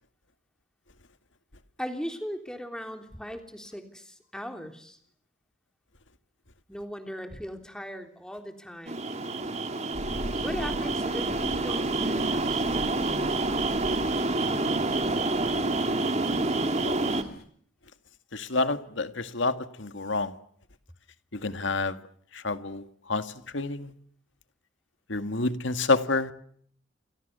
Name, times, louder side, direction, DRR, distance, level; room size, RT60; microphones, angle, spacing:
voice 1, 1.8-5.0 6.7-9.0 10.4-12.9, equal, 5° left, 3.4 m, -38 dB
sound 1, 8.9-17.2, right 2 dB, 35° right, 2.2 m, -28 dB
sound 2, 9.9-17.4, equal, 50° left, 3.4 m, -42 dB
voice 2, 16.8-17.1 18.3-20.4 21.3-22.0 22.3-23.9 25.1-26.3, left 3 dB, 70° left, 2.0 m, -29 dB
30.0 x 26.5 x 6.9 m
head